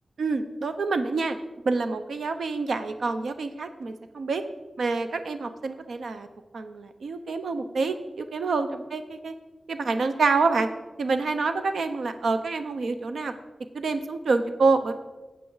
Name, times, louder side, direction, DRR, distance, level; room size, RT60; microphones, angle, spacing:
voice 1, 0.2-1.4 1.6-4.4 4.8-6.3 6.5-9.3 9.7-10.7 11.0-13.3 13.7-15.0, right 4 dB, 85° right, 9 dB, 0.7 m, -27 dB
12.5 x 8.1 x 4.0 m, 1.1 s
wide cardioid pair, 80°, 0 cm